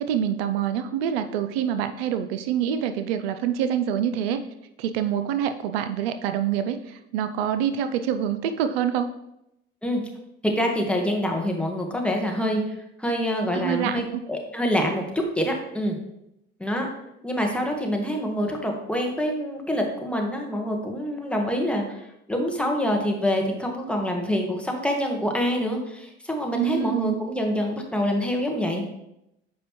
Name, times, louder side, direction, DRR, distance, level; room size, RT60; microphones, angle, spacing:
voice 1, 0.0-4.4 4.8-9.1 13.5-14.2 26.5-27.2, right 9 dB, 85° right, 9 dB, 0.5 m, -26 dB
voice 2, 10.4-12.6 13.0-16.0 16.6-16.9 17.2-28.8, equal, 5° left, 1 dB, 1.3 m, -26 dB
7.2 x 5.0 x 3.0 m, 0.85 s
hypercardioid pair, 70°, 30 cm